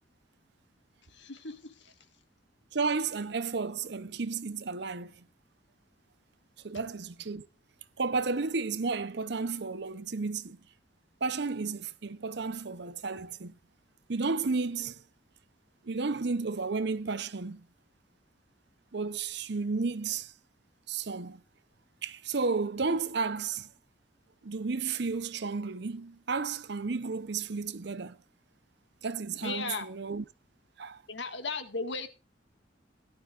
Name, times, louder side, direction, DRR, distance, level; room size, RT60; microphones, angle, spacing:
voice 1, 1.1-1.9 29.4-29.9 31.1-32.1, left 3 dB, 65° left, 1.8 m, -36 dB
voice 2, 2.7-5.1 6.6-7.5 8.0-10.6 11.2-13.5 14.1-15.0 15.8-17.6 18.9-20.3 20.9-21.4 22.0-23.7 24.4-28.2 29.0-30.2 30.8-31.0, right 4 dB, 60° right, 0.7 m, -32 dB
17.5 x 12.0 x 2.5 m
head